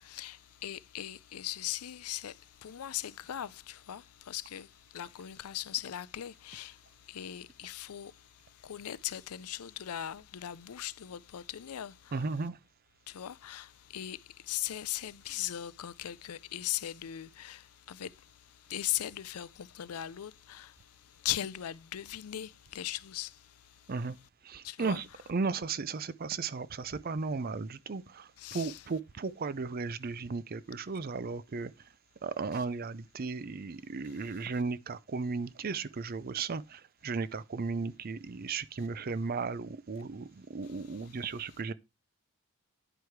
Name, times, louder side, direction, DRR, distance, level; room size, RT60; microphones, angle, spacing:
voice 1, 0.0-6.8 7.1-8.1 8.6-12.2 13.1-18.1 18.7-20.7 21.2-23.4 24.6-25.0 28.4-28.8, left 12 dB, 85° left, 0.5 m, -39 dB
voice 2, 12.1-12.6 23.9-24.1 24.4-31.7 32.2-41.7, right 4 dB, 40° right, 0.5 m, -35 dB
9.9 x 4.8 x 4.6 m
head